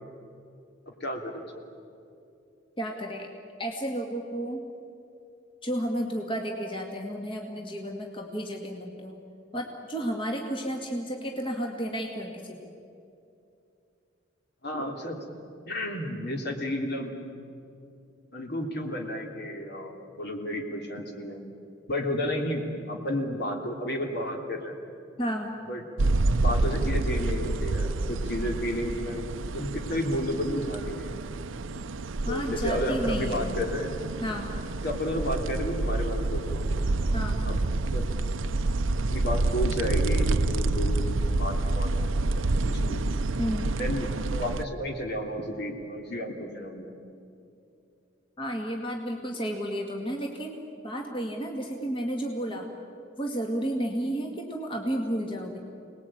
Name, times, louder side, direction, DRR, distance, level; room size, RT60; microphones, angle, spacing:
voice 1, 1.0-1.5 14.6-15.2 15.7-17.2 18.3-21.4 21.9-24.8 25.7-25.8 26.3-29.3 29.5-31.2 32.3-33.9 34.8-36.8 37.5-37.6 37.9-38.1 39.1-41.9 42.2-43.0 43.8-46.9, left 1 dB, 55° left, 2 dB, 3.2 m, -32 dB
voice 2, 2.8-3.3 3.6-4.6 5.6-9.2 9.5-12.7 25.2-25.6 32.3-33.6 34.2-34.5 37.1-37.5 43.4-43.7 48.4-50.6 50.8-52.7 53.2-55.6, equal, 25° left, 1 dB, 2.1 m, -32 dB
sound 1, 26.0-44.6, right 2 dB, 80° right, 0.7 m, -28 dB
27.5 x 20.0 x 8.9 m, 2.6 s
head